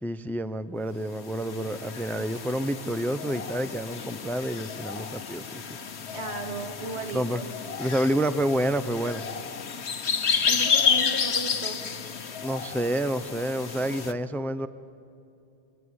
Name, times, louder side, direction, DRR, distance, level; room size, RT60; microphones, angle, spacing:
voice 1, 0.0-5.6 7.1-7.4 7.8-9.2 12.4-14.7, right 1 dB, ahead, 13 dB, 0.6 m, -28 dB
sound 1, 1.1-14.1, left 6 dB, 85° left, 1.4 m, -31 dB
voice 2, 6.1-7.5 10.5-11.8, right 2 dB, 85° right, 3 dB, 2.9 m, -35 dB
25.5 x 23.5 x 9.5 m, 2.6 s
omnidirectional pair, 1.1 m